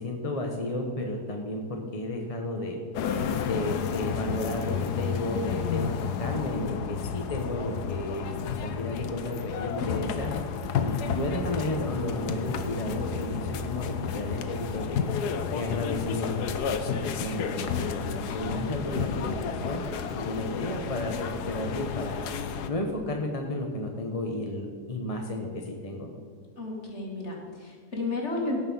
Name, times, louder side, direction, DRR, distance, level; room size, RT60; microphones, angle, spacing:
voice 1, 0.0-2.8 3.4-8.3 8.6-10.3 10.8-15.0 15.5-18.0 18.3-19.8 20.1-22.2 22.7-26.1, left 1 dB, 25° left, 2 dB, 1.0 m, -33 dB
sound 1, 2.9-22.7, left 6 dB, 85° left, 1.4 m, -31 dB
voice 2, 18.4-19.3 26.6-28.6, left 2 dB, 45° left, -1 dB, 2.6 m, -33 dB
17.0 x 6.7 x 5.5 m, 2.1 s
omnidirectional pair, 1.7 m